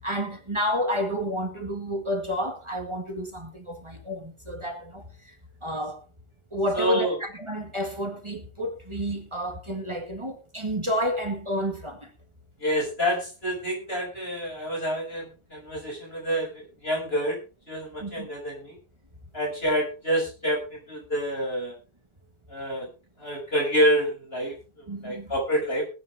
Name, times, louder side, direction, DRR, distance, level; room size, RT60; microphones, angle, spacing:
voice 1, 0.0-5.0 5.6-6.0 6.5-12.1 18.0-18.3 24.9-25.3, equal, 25° right, 2.0 m, -30 dB
voice 2, 6.7-7.2 12.6-17.4 17.7-18.8 19.3-21.7 22.5-22.9 23.2-24.5 25.0-25.9, equal, 65° left, 7.4 m, -27 dB
20.5 x 9.3 x 3.7 m
omnidirectional pair, 1.1 m